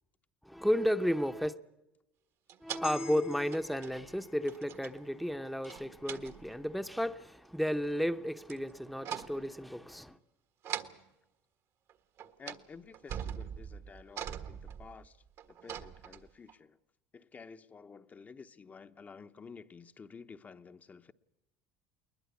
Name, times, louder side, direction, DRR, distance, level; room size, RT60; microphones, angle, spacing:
voice 1, 0.4-1.6 2.6-10.2, equal, ahead, 0.8 m, -33 dB
sound 1, 2.5-2.9 3.5-4.2 4.5-5.0 5.6-6.6 8.5-8.7 9.0-9.5 10.6-11.0 11.9-12.0 12.2-12.7 12.9-16.5, right 9 dB, 55° right, 1.5 m, -42 dB
sound 2, 2.8-7.3 7.7-7.9, left 10 dB, 60° left, 0.9 m, -53 dB
voice 2, 12.2-16.8 17.1-21.1, left 5 dB, 30° left, 0.9 m, -52 dB
21.0 x 20.5 x 8.3 m
supercardioid pair, 85°, 6 cm